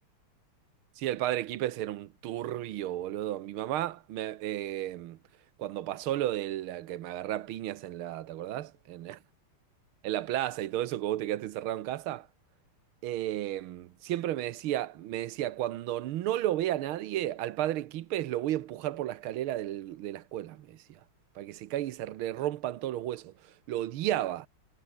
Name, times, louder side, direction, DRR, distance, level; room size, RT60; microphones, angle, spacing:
voice 1, 1.0-5.2 5.6-9.2 10.0-12.3 13.0-21.0 21.3-24.5, right 13 dB, 80° right, 1.7 m, -33 dB
omnidirectional pair, 2.3 m